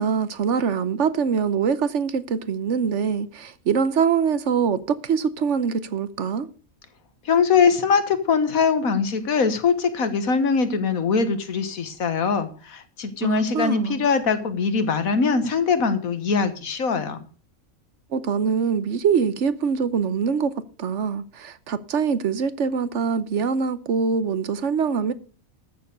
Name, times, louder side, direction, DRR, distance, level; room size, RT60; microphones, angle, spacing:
voice 1, 0.0-6.5 13.2-14.1 18.1-20.5 20.8-25.1, right 6 dB, 60° right, 1.1 m, -24 dB
voice 2, 7.3-17.2, left 5 dB, 85° left, 1.8 m, -22 dB
13.5 x 6.9 x 6.5 m
omnidirectional pair, 1.4 m